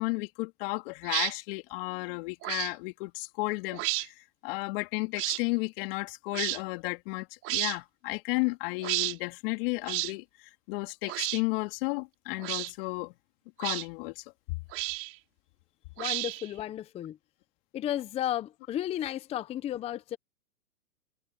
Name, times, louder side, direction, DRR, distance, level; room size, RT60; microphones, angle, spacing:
voice 1, 0.0-4.1 4.4-10.2 10.7-13.1 13.6-14.2, left 26 dB, 40° left, 2.7 m, -33 dB
sound 1, 1.0-1.3 2.4-2.7 3.7-4.1 5.2-5.4 6.3-6.6 7.4-7.8 8.8-9.1 9.9-10.1 11.1-11.4 12.4-12.7 13.6-13.8 14.7-15.1 16.0-16.5, right 19 dB, 30° right, 5.3 m, -31 dB
voice 2, 16.0-17.2 17.7-20.2, left 12 dB, 15° left, 0.8 m, -33 dB
hypercardioid pair, 130°, 43 cm